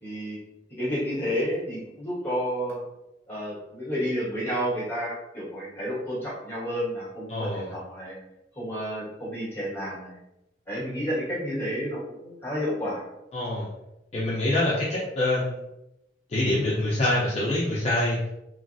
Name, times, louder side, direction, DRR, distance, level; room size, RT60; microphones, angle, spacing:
voice 1, 0.0-0.4 0.8-2.8 3.3-8.1 8.5-10.2 10.7-13.0, equal, 10° left, -7 dB, 1.3 m, -30 dB
voice 2, 7.3-7.7 13.3-13.6 14.1-15.6 16.3-18.2, left 1 dB, 35° left, -7 dB, 0.5 m, -25 dB
3.0 x 2.4 x 2.5 m, 0.90 s
head